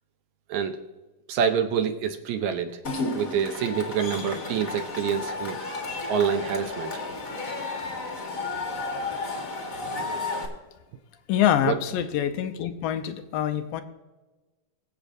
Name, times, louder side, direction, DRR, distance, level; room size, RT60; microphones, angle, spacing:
voice 1, 1.3-2.8 3.1-5.6 6.1-7.0 9.8-10.1 11.6-11.8, right 7 dB, 75° right, 7 dB, 1.8 m, -27 dB
Cheering / Crowd, 2.8-10.5, left 3 dB, 35° left, 1.3 m, -32 dB
voice 2, 11.3-13.8, left 10 dB, 90° left, 8 dB, 2.4 m, -25 dB
23.5 x 8.0 x 2.6 m, 1.2 s
omnidirectional pair, 3.9 m